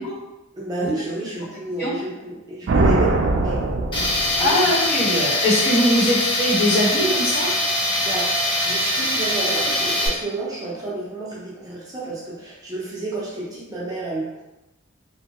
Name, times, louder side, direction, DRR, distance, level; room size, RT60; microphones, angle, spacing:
voice 1, 0.5-3.6 3.9-4.1 4.4-4.8 8.0-14.4, right 2 dB, 20° right, -6 dB, 0.6 m, -30 dB
sound 1, 2.7-4.8, right 2 dB, 70° right, 0.3 m, -21 dB
Tools, 3.9-10.1, left 1 dB, 25° left, 0.5 m, -22 dB
voice 2, 4.4-7.5, equal, 55° left, -8 dB, 1.0 m, -21 dB
2.8 x 2.2 x 2.8 m, 0.98 s
head